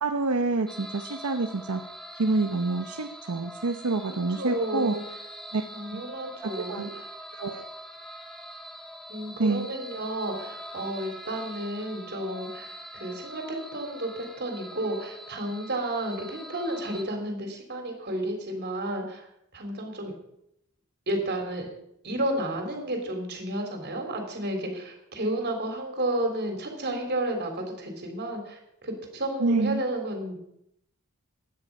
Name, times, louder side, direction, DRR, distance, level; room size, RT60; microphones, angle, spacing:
voice 1, 0.0-1.8 2.2-4.9 5.5-5.6 5.9-6.0 6.6-6.9 7.4-7.7 9.4-9.7 29.4-29.8, right 3 dB, 75° right, 5 dB, 0.8 m, -27 dB
sound 1, 0.7-17.0, equal, ahead, 1.4 m, -43 dB
voice 2, 4.4-5.0 5.7-7.1 9.1-19.3 19.5-20.1 21.1-21.7 22.0-30.4, right 1 dB, 50° right, 4 dB, 3.6 m, -32 dB
16.0 x 10.5 x 5.4 m, 0.78 s
head